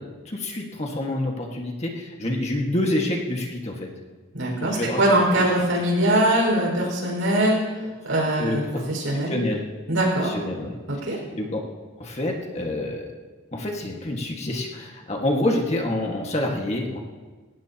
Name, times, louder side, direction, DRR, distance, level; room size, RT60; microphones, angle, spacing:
voice 1, 0.0-3.9 4.6-5.0 5.4-5.7 7.8-7.9 8.4-8.9 9.3-9.6 10.2-10.8 11.3-11.6 12.0-13.1 13.5-17.0, left 1 dB, 30° left, 0 dB, 1.7 m, -27 dB
voice 2, 4.3-7.6 8.0-8.6 8.9-9.3 9.9-10.3 11.1-11.2, right 1 dB, 75° right, -2 dB, 5.5 m, -21 dB
19.5 x 17.0 x 2.9 m, 1.3 s
head